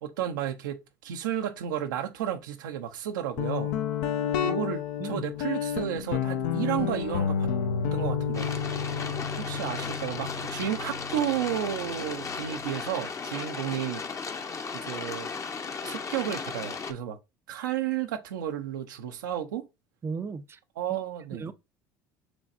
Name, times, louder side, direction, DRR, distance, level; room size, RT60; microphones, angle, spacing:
voice 1, 0.0-3.7 4.4-7.5 7.9-8.8 9.4-14.0 14.7-15.3 15.8-17.2 17.5-19.7 20.8-21.5, right 10 dB, 85° right, 0.7 m, -32 dB
Guitar, 3.4-12.8, left 8 dB, 75° left, 0.7 m, -31 dB
sound 1, 8.3-16.9, left 5 dB, 30° left, 0.7 m, -36 dB
voice 2, 20.0-20.6 21.3-21.5, right 5 dB, 25° right, 0.4 m, -35 dB
6.2 x 3.1 x 2.6 m
hypercardioid pair, 80°, 10 cm